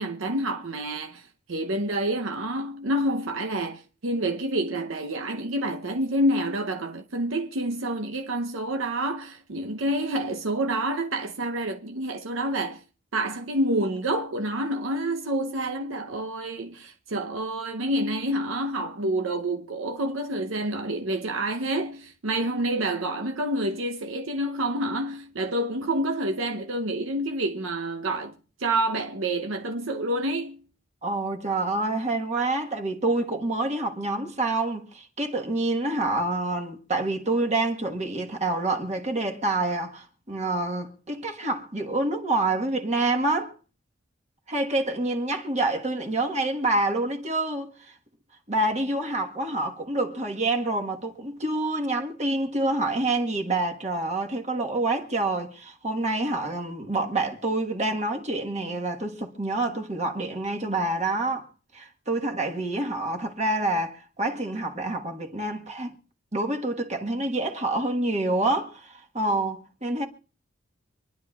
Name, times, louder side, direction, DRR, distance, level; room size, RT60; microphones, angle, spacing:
voice 1, 0.0-12.8 13.1-30.6, right 1 dB, 85° right, 0.8 m, -28 dB
voice 2, 31.0-43.5 44.5-47.9 48.5-61.5 61.7-65.9 66.3-70.1, right 2 dB, 35° right, 1.4 m, -27 dB
26.0 x 10.5 x 2.4 m
head